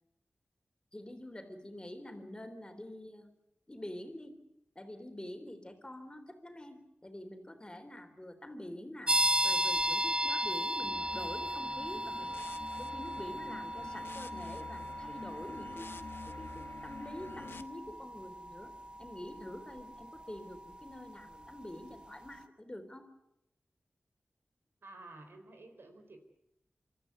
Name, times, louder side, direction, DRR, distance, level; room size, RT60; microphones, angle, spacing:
voice 1, 0.9-3.3 3.7-4.4 4.8-9.2 9.4-12.4 12.8-16.0 16.3-18.7 19.0-23.1, left 1 dB, 25° left, 6 dB, 3.8 m, -46 dB
sound 1, 9.1-21.6, equal, 25° right, 1.0 m, -36 dB
sound 2, 10.8-17.6, left 4 dB, 75° left, 1.1 m, -49 dB
voice 2, 24.8-26.2, right 2 dB, 75° right, 7 dB, 4.0 m, -52 dB
25.0 x 14.0 x 9.6 m, 0.84 s
cardioid pair, 50°, 4 cm